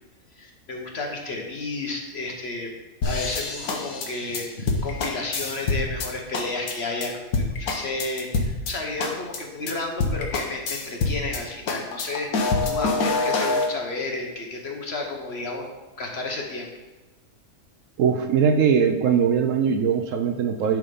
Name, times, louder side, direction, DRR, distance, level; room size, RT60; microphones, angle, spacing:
voice 1, 0.3-2.7 3.0-15.7 16.0-16.7, left 3 dB, 45° left, 2 dB, 1.2 m, -32 dB
sound 1, 3.0-6.1 6.3-6.7 7.0-7.1 7.3-8.7 9.0-9.4 9.7-9.8 10.0-11.4 11.7-13.7, left 3 dB, 75° left, 1.5 m, -25 dB
voice 2, 18.0-20.8, right 7 dB, 70° right, 7 dB, 0.9 m, -21 dB
10.5 x 3.7 x 5.2 m, 1.2 s
omnidirectional pair, 1.6 m